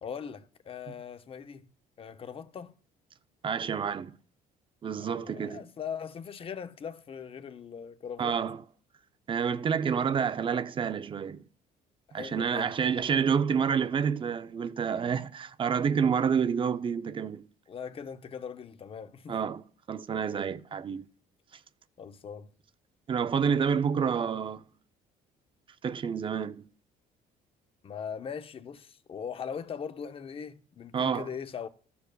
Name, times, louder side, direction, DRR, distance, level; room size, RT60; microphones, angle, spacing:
voice 1, 0.0-1.7 2.0-2.7 4.9-8.4 12.1-13.0 17.7-19.4 22.0-22.5 27.8-31.7, left 7 dB, 35° left, 0.6 m, -40 dB
voice 2, 3.4-4.2 4.8-5.6 8.2-8.6 9.3-11.4 12.1-17.5 19.3-21.1 23.1-24.7 25.8-26.6 30.9-31.3, right 7 dB, 30° right, 0.4 m, -29 dB
13.5 x 6.9 x 2.3 m
cardioid pair, 110°, 17 cm